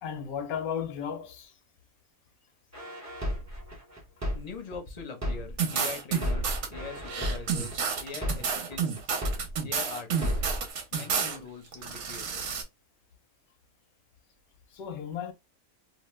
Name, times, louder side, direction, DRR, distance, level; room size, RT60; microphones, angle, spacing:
voice 1, 0.0-1.5 14.7-15.3, left 8 dB, 75° left, 1.0 m, -34 dB
sound 1, 2.7-5.7 6.1-9.7 10.1-10.7, equal, 25° right, 0.4 m, -33 dB
voice 2, 4.3-9.2 9.6-10.4 10.9-12.4, left 5 dB, 40° left, 0.5 m, -42 dB
sound 2, 5.6-6.7 7.1-11.4 11.7-12.6, right 6 dB, 60° right, 0.9 m, -30 dB
2.7 x 2.1 x 3.1 m
omnidirectional pair, 1.6 m